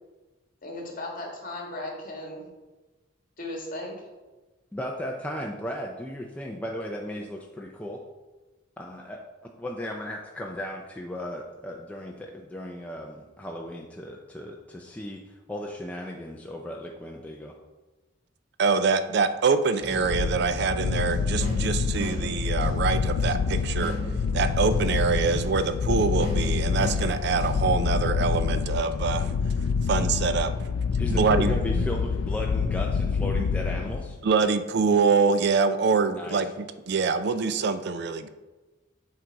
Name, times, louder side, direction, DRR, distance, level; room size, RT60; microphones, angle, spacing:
voice 1, 0.6-2.5 3.4-4.0, left 1 dB, 45° left, 0 dB, 1.6 m, -36 dB
voice 2, 4.7-8.0 8.8-17.6 31.0-34.2 36.1-36.4, left 1 dB, 5° left, 0 dB, 0.4 m, -36 dB
voice 3, 18.6-24.0 24.3-29.3 29.9-30.5 31.1-31.9 33.4-33.5 34.2-38.3, right 5 dB, 60° right, 11 dB, 0.4 m, -25 dB
sound 1, 19.8-28.0, equal, 75° right, 1.6 m, -37 dB
sound 2, 20.0-34.3, left 5 dB, 90° left, 0.3 m, -27 dB
7.6 x 4.0 x 4.6 m, 1.2 s
head